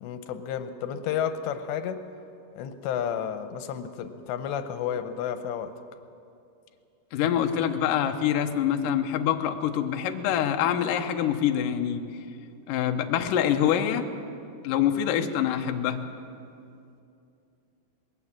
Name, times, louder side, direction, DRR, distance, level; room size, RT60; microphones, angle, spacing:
voice 1, 0.0-2.0 2.6-5.7, left 8 dB, 90° left, 9 dB, 3.1 m, -31 dB
voice 2, 7.1-12.0 12.7-14.0 14.6-16.0, left 9 dB, 70° left, 5 dB, 2.1 m, -25 dB
21.0 x 18.0 x 7.5 m, 2.5 s
omnidirectional pair, 4.9 m